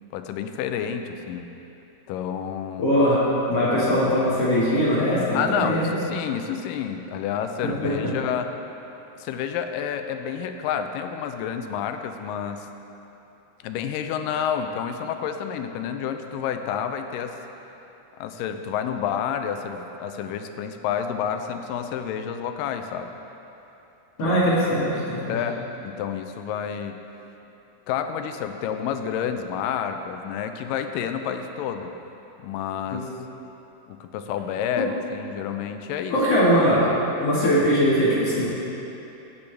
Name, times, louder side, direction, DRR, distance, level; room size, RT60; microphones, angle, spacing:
voice 1, 0.1-1.5 2.1-2.9 5.3-8.5 9.2-12.7 13.6-17.4 18.2-23.1 24.2-24.4 25.3-27.0 27.9-31.9 32.4-33.1 33.9-36.2, left 8 dB, 80° left, 7 dB, 2.2 m, -29 dB
voice 2, 2.8-3.2 3.5-6.0 7.8-7.9 24.2-25.4 32.9-33.0 36.1-36.9 37.2-38.5, equal, 50° left, -8 dB, 2.8 m, -21 dB
16.0 x 8.5 x 3.4 m, 3.0 s
omnidirectional pair, 4.0 m